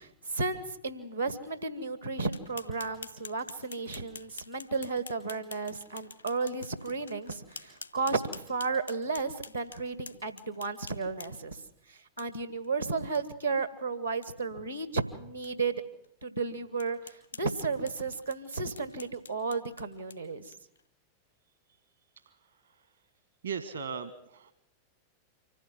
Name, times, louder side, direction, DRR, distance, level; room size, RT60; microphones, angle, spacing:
voice 1, 0.0-11.6 11.9-15.7 16.2-20.5, right 4 dB, 85° right, 12 dB, 1.5 m, -33 dB
sound 1, 2.2-11.6 12.2-12.3 12.6-12.7 13.1-13.2 13.6-13.7 14.1-14.3 14.8-14.9 15.4-15.5 16.0-16.1 16.8-20.8, left 4 dB, 85° left, 1.8 m, -48 dB
voice 2, 23.4-24.5, right 6 dB, 70° right, 11 dB, 1.4 m, -37 dB
25.0 x 15.5 x 7.8 m, 0.73 s
figure-of-eight pair, 90°, 0 cm